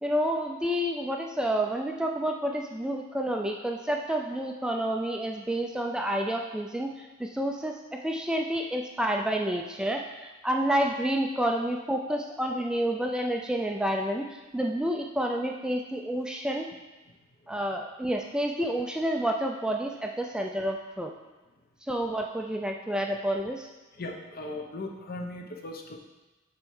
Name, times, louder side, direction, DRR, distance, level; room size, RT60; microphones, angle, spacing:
voice 1, 0.0-16.7 17.5-21.1 21.9-23.7, right 1 dB, 5° right, 1 dB, 0.4 m, -29 dB
voice 2, 24.0-26.0, left 2 dB, 45° left, 3 dB, 0.9 m, -38 dB
8.0 x 4.4 x 5.3 m, 1.2 s
head